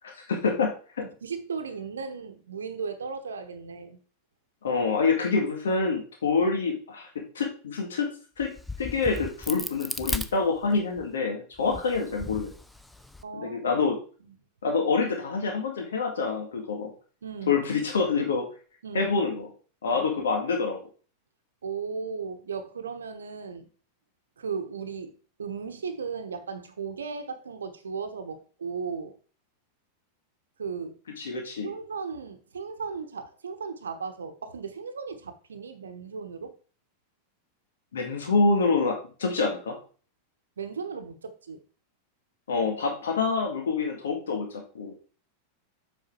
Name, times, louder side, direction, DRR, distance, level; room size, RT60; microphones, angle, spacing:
voice 1, 0.0-0.7 4.6-7.1 7.4-8.1 8.4-8.5 8.8-12.5 13.4-14.0 14.6-16.9 17.5-18.4 18.9-19.5 19.8-20.8 31.2-31.7 37.9-39.8 42.5-44.9, left 4 dB, 65° left, 1.9 m, -26 dB
voice 2, 1.2-4.0 6.4-6.5 11.6-11.8 13.2-13.6 17.2-17.6 18.8-19.1 19.9-20.2 21.6-23.7 24.4-25.1 25.4-29.1 30.6-31.0 31.6-36.5 40.6-41.6, right 5 dB, 70° right, 1.0 m, -36 dB
Crack, 8.4-11.0 11.6-13.2, left 2 dB, 5° left, 0.6 m, -36 dB
7.5 x 5.4 x 4.5 m
figure-of-eight pair, 90°, 0 cm